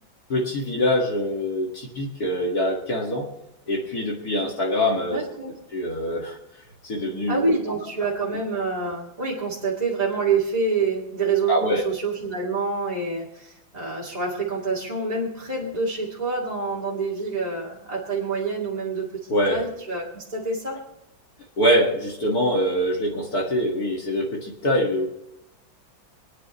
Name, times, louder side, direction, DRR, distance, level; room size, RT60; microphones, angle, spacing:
voice 1, 0.3-3.3 3.7-5.2 5.7-6.4 6.8-7.4 11.5-11.8 19.3-19.6 21.6-25.1, equal, 50° left, 0 dB, 2.3 m, -24 dB
voice 2, 5.1-5.5 7.3-11.6 11.8-19.1 19.5-20.8, right 4 dB, 20° right, -6 dB, 2.2 m, -27 dB
26.0 x 9.8 x 3.1 m, 0.84 s
omnidirectional pair, 2.2 m